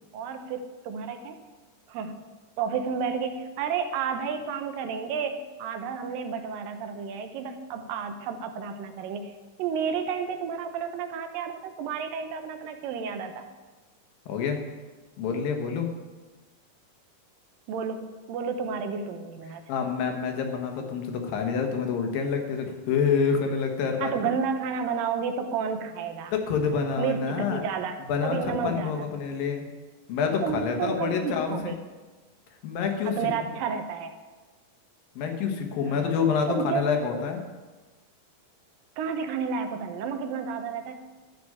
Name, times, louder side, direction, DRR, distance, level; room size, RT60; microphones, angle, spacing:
voice 1, 0.1-1.4 1.9-2.3 2.6-13.5 17.7-19.6 24.0-26.3 27.0-29.1 30.4-31.8 33.1-34.1 36.0-36.1 36.5-36.8 39.0-41.0, right 6 dB, 80° right, 7 dB, 2.5 m, -31 dB
voice 2, 14.3-14.6 15.2-15.9 19.7-24.1 26.3-27.6 28.1-29.7 30.1-31.8 32.6-33.3 35.2-37.4, left 6 dB, 80° left, 4 dB, 3.0 m, -27 dB
13.0 x 4.9 x 8.5 m, 1.3 s
omnidirectional pair, 4.0 m